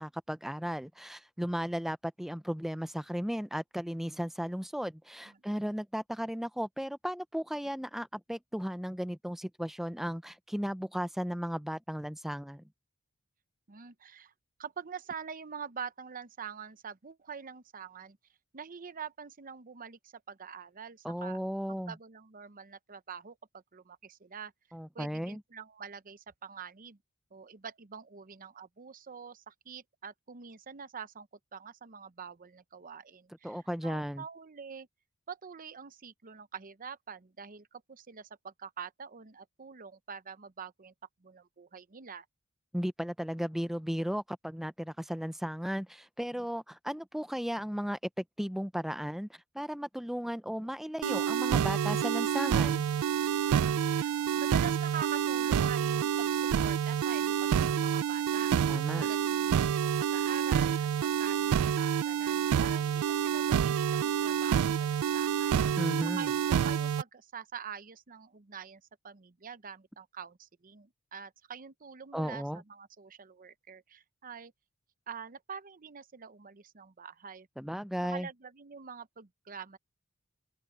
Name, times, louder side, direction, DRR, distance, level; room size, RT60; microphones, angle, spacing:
voice 1, 0.0-12.6 21.0-22.0 24.7-25.4 33.4-34.2 42.7-52.9 58.7-59.1 65.8-66.3 72.1-72.6 77.6-78.3, equal, ahead, 0.6 m, -35 dB
voice 2, 5.3-5.6 13.7-14.3 14.6-18.2 18.5-21.4 21.9-24.5 24.9-27.0 27.3-34.9 35.3-40.9 41.2-42.3 46.3-46.4 53.5-65.6 66.2-74.5 75.1-77.5 78.0-79.8, right 6 dB, 40° right, 0.8 m, -45 dB
sound 1, 51.0-67.0, right 8 dB, 75° right, 0.3 m, -28 dB
open air
head